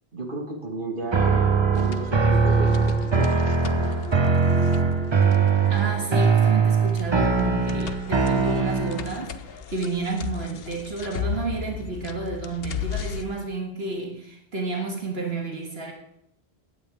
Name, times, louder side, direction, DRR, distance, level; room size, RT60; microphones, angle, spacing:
voice 1, 0.1-1.4 1.7-3.4, right 2 dB, 55° right, 1 dB, 1.9 m, -33 dB
sound 1, 1.0-6.1, left 2 dB, 90° left, 2.5 m, -38 dB
sound 2, 1.1-9.2, right 5 dB, 30° right, 0.8 m, -21 dB
sound 3, 1.7-13.2, left 8 dB, 65° left, 0.9 m, -36 dB
voice 2, 5.7-9.3 9.7-15.9, right 3 dB, 70° right, 0 dB, 1.9 m, -31 dB
16.0 x 9.6 x 3.4 m, 0.77 s
omnidirectional pair, 1.1 m